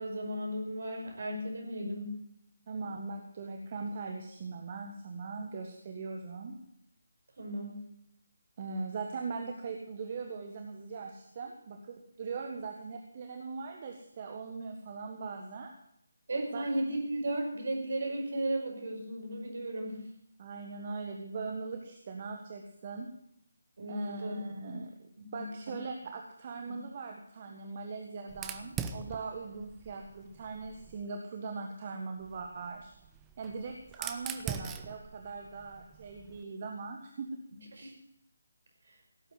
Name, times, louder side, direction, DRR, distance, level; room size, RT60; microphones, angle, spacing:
voice 1, 0.0-2.2 7.4-7.8 16.3-20.0 23.8-24.4 25.2-25.4 26.6-26.8 37.7-37.9 38.9-39.0, right 1 dB, 55° right, 2 dB, 5.5 m, -35 dB
voice 2, 2.7-6.6 8.6-15.7 16.5-16.6 20.4-23.1 23.9-24.9 25.3-33.0 33.4-37.4, right 4 dB, 35° right, 3 dB, 1.5 m, -40 dB
Fire, 28.3-31.0 32.2-36.4, right 7 dB, 10° right, 0.7 m, -43 dB
17.0 x 8.9 x 8.0 m, 0.74 s
figure-of-eight pair, 150°, 0 cm